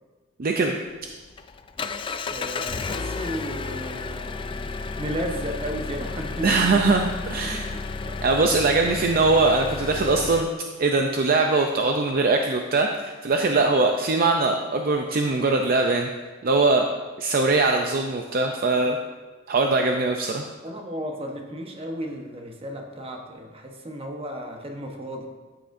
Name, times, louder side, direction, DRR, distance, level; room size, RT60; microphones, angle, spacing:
voice 1, 0.4-0.7 6.4-7.6 8.2-10.5 10.8-16.1 16.4-16.9 17.2-19.0 19.5-20.4, right 3 dB, 50° right, 3 dB, 0.5 m, -21 dB
Engine, 0.9-10.4, left 4 dB, 25° left, 0.3 m, -32 dB
voice 2, 2.3-4.6 5.0-6.9 7.4-8.2 8.6-9.1 20.6-25.3, equal, 30° right, 2 dB, 1.1 m, -34 dB
13.5 x 7.6 x 2.6 m, 1.3 s
head